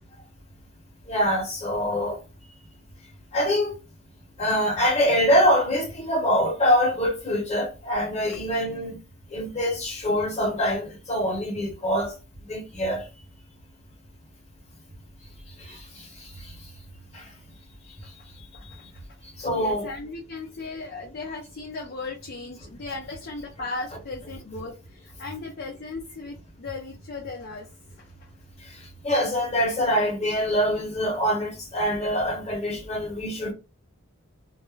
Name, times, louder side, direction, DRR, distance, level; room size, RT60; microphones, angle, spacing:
voice 1, 1.1-2.2 3.3-3.7 4.4-9.0 9.3-12.1 12.5-13.0 15.6-16.5 17.1-17.3 18.4-18.9 19.4-19.9 28.6-33.5, equal, 30° left, 0.8 m, -25 dB
voice 2, 19.5-27.7, left 3 dB, 45° left, 0.4 m, -36 dB
2.3 x 2.0 x 3.1 m
head